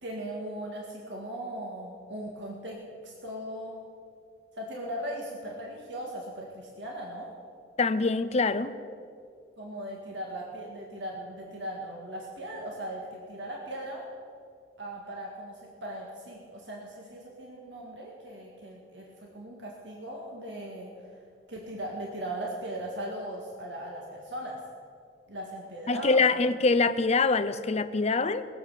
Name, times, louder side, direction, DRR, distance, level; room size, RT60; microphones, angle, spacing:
voice 1, 0.0-3.8 4.5-7.3 9.6-14.0 14.8-21.1 21.5-24.6 25.3-26.2, right 1 dB, 70° right, -2 dB, 1.9 m, -38 dB
voice 2, 7.8-8.7 25.9-28.5, left 3 dB, 35° left, 12 dB, 0.6 m, -24 dB
20.0 x 7.8 x 6.8 m, 2.3 s
head